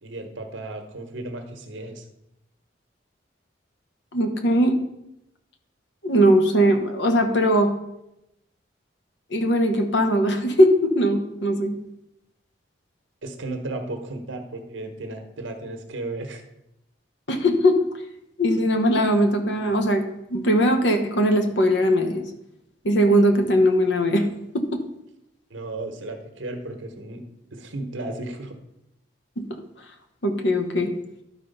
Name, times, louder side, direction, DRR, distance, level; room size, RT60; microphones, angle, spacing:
voice 1, 0.0-2.0 13.2-16.4 25.5-27.2 27.5-28.6, right 2 dB, 80° right, 5 dB, 1.2 m, -34 dB
voice 2, 4.1-4.8 6.0-7.7 9.3-11.8 17.3-17.8 18.4-20.0 20.3-22.2 22.8-24.2 24.5-24.8 30.2-30.9, equal, 65° left, 6 dB, 1.1 m, -20 dB
12.0 x 4.2 x 5.5 m, 0.88 s
head